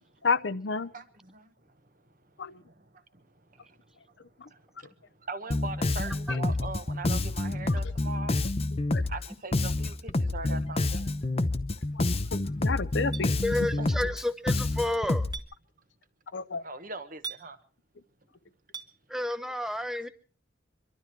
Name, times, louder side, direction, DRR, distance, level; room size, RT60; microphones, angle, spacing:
voice 1, 0.2-0.9 2.4-2.6 4.2-4.5 6.3-6.4 7.7-7.8 8.9-9.0 11.9-13.4 16.3-16.7, left 4 dB, 70° left, 0.7 m, -31 dB
voice 2, 0.9-1.5 2.9-3.8 4.0-4.1 4.4-8.4 9.1-11.1 13.8-13.9 16.6-17.6, right 3 dB, 45° right, 1.2 m, -41 dB
Bass guitar, 5.5-15.4, left 2 dB, 35° left, 0.7 m, -28 dB
Chink clink, 13.1-13.3 15.3-15.5 17.2-17.4 18.7-18.9, right 6 dB, 25° right, 1.0 m, -38 dB
voice 3, 13.4-15.3 19.1-20.1, left 1 dB, 5° right, 0.7 m, -30 dB
24.0 x 12.5 x 4.6 m
head